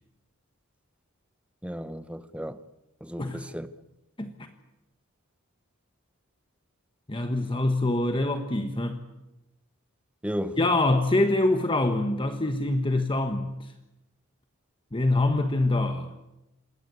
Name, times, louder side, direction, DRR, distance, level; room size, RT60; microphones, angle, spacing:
voice 1, 1.6-2.6 3.0-3.7 10.2-10.6, equal, 5° right, 1.0 m, -34 dB
voice 2, 7.1-9.0 10.6-13.7 14.9-16.1, left 2 dB, 25° left, 1.4 m, -25 dB
27.0 x 21.0 x 8.4 m
head